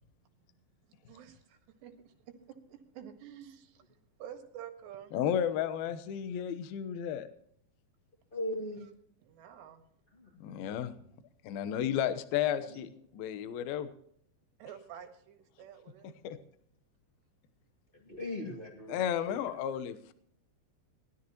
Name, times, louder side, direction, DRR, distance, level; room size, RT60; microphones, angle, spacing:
voice 1, 1.0-2.3 2.7-3.9 4.2-5.2 8.8-8.9 9.2-9.9 14.6-16.2, right 9 dB, 70° right, 5 dB, 3.7 m, -49 dB
voice 2, 5.1-7.3 10.4-10.9 11.4-13.9 16.2-16.4 18.9-20.1, left 9 dB, 70° left, 11 dB, 2.5 m, -33 dB
voice 3, 8.3-8.9 10.1-10.6 12.7-12.8 17.9-19.0 19.3-19.4, left 1 dB, 15° left, 0 dB, 1.9 m, -39 dB
20.0 x 12.5 x 3.0 m, 0.64 s
omnidirectional pair, 5.2 m